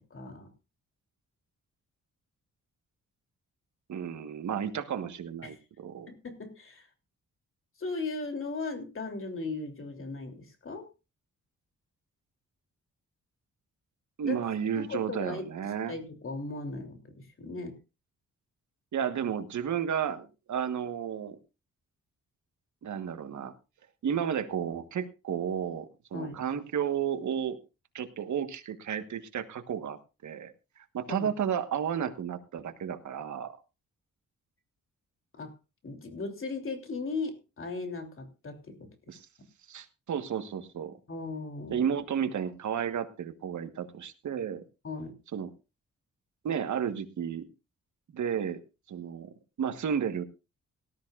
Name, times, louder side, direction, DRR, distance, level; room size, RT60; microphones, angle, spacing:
voice 1, 0.1-0.5 5.4-5.6 6.1-6.9 7.8-10.9 14.2-14.4 14.8-17.8 26.1-26.4 31.1-31.3 35.4-35.5 35.8-38.9 41.1-41.9 44.8-45.1, left 3 dB, 45° left, 4 dB, 3.2 m, -37 dB
voice 2, 3.9-6.1 14.2-16.0 18.9-21.4 22.8-23.5 24.0-27.6 27.9-30.5 30.9-33.6 39.1-39.3 39.7-41.0 41.7-44.6 45.3-45.5 46.4-47.5 48.1-48.6 48.9-49.3 49.6-50.2, right 8 dB, 75° right, 9 dB, 1.4 m, -32 dB
18.5 x 13.0 x 2.5 m, 0.29 s
cardioid pair, 105°, 30 cm